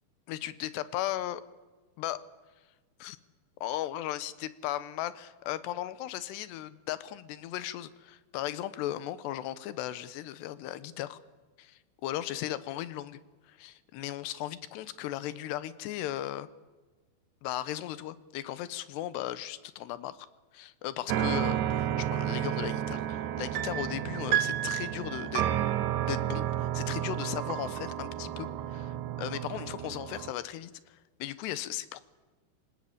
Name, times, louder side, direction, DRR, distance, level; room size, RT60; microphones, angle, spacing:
voice 1, 0.3-1.4 2.0-2.2 3.0-3.2 3.6-11.2 11.6-13.2 13.4-16.5 17.4-20.3 20.5-25.5 26.0-32.0, left 13 dB, 90° left, 15 dB, 3.1 m, -37 dB
sound 1, 21.1-30.3, right 11 dB, 85° right, 1.7 m, -31 dB
27.0 x 18.5 x 8.6 m, 1.3 s
omnidirectional pair, 4.7 m